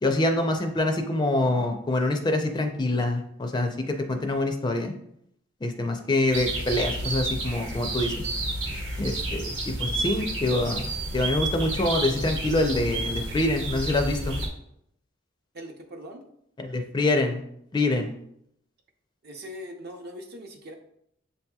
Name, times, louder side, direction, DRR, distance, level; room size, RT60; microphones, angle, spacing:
voice 1, 0.0-4.9 5.6-8.2 9.0-9.5 9.8-14.4 16.6-17.4 17.7-18.1, left 2 dB, 20° left, 5 dB, 0.4 m, -25 dB
sound 1, 6.3-14.5, right 2 dB, 75° right, 0.9 m, -30 dB
voice 2, 15.5-16.2 19.2-20.7, equal, 55° right, 3 dB, 0.6 m, -41 dB
7.6 x 2.7 x 2.3 m, 0.74 s
head